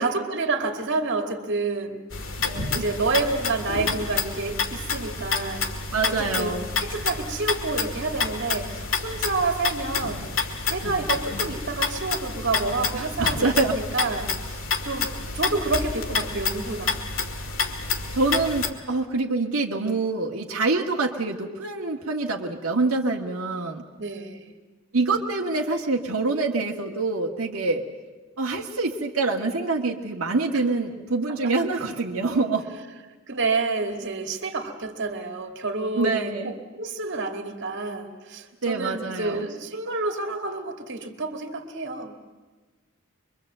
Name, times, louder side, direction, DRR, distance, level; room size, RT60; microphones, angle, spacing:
voice 1, 0.0-2.0 2.7-5.6 6.1-10.2 10.7-17.0 24.0-24.5 31.4-31.5 33.3-42.1, right 3 dB, 55° right, 5 dB, 2.2 m, -29 dB
sound 1, 2.1-18.7, left 4 dB, 65° left, 2.3 m, -29 dB
voice 2, 2.4-2.8 5.9-6.7 12.9-13.8 18.2-23.8 24.9-27.8 28.4-32.7 36.0-36.5 38.6-39.5, right 3 dB, 85° right, 0 dB, 1.7 m, -25 dB
24.5 x 23.5 x 7.9 m, 1.3 s
head